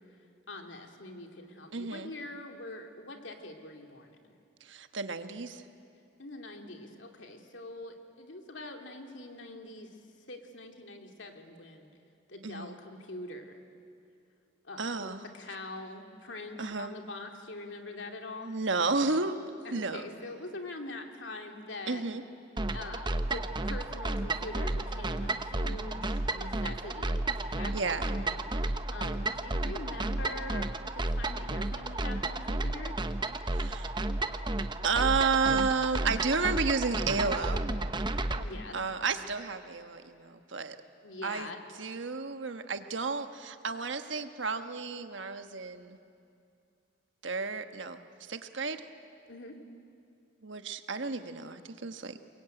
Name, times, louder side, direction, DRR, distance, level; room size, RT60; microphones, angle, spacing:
voice 1, 0.5-4.4 6.2-10.0 10.3-11.9 12.3-13.6 14.6-18.5 19.6-22.0 22.7-32.9 38.3-38.8 41.0-41.6 49.3-49.6, left 2 dB, 70° left, 3 dB, 2.7 m, -44 dB
voice 2, 1.7-2.1 4.6-5.6 12.4-12.8 14.8-15.2 16.6-16.9 18.4-19.4 19.7-20.1 21.9-22.2 27.7-28.1 33.5-33.9 34.8-37.6 38.7-40.8 41.2-41.5 41.8-46.0 47.2-48.9 50.4-52.2, right 4 dB, 75° right, 8 dB, 1.3 m, -32 dB
sound 1, 22.6-38.4, right 2 dB, 25° right, 0.9 m, -32 dB
28.5 x 22.0 x 9.1 m, 2.5 s
head